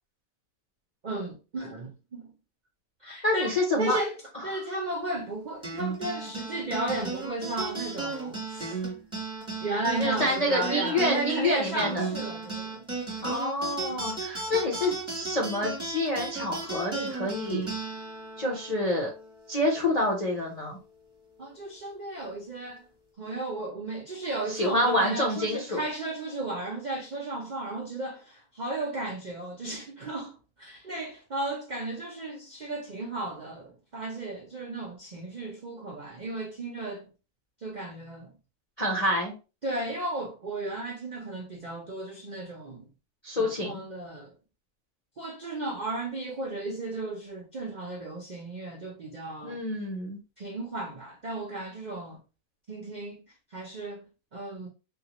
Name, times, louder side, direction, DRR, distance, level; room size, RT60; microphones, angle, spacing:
voice 1, 1.0-2.3 3.0-4.2 4.4-8.8 9.6-12.8 21.4-22.8 23.2-37.1 37.6-38.3 39.6-42.9 43.4-44.3 45.2-49.6 50.4-52.2 52.7-53.2 53.5-54.1 54.3-54.7, right 2 dB, 70° right, 0.4 m, -34 dB
voice 2, 3.2-4.0 10.0-12.1 13.2-17.7 18.4-19.1 19.5-20.8 24.5-25.8 38.8-39.3 43.2-43.8 49.4-50.2, left 1 dB, 55° left, 0.4 m, -27 dB
sound 1, 5.6-20.4, right 4 dB, 5° right, 1.0 m, -35 dB
3.6 x 2.4 x 2.9 m
omnidirectional pair, 1.7 m